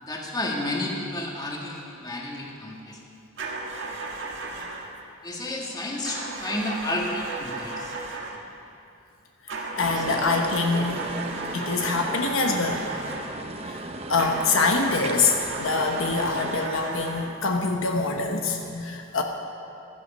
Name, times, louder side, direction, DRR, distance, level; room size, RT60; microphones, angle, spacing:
voice 1, 0.0-3.0 4.4-4.6 5.2-7.9 10.0-10.2, left 1 dB, 20° left, -1 dB, 1.8 m, -31 dB
sound 1, 3.4-5.0 6.0-8.5 9.5-13.5 14.2-17.4, right 3 dB, 65° right, 1.6 m, -35 dB
voice 2, 9.8-11.0 11.5-12.8 13.6-19.2, left 3 dB, 70° left, 3 dB, 1.1 m, -25 dB
sound 2, 9.8-16.7, right 2 dB, 30° right, 0.8 m, -36 dB
16.0 x 12.5 x 5.5 m, 2.5 s
head